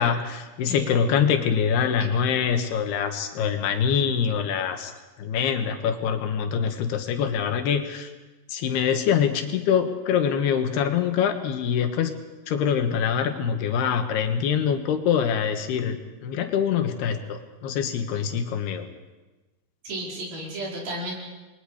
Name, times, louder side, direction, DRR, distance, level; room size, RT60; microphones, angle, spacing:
voice 1, 0.0-4.9 5.2-8.1 8.5-12.1 12.5-18.9, left 7 dB, 85° left, 6 dB, 3.6 m, -24 dB
voice 2, 19.8-21.1, right 1 dB, 65° right, -3 dB, 6.9 m, -33 dB
28.5 x 22.0 x 5.1 m, 1.2 s
omnidirectional pair, 4.5 m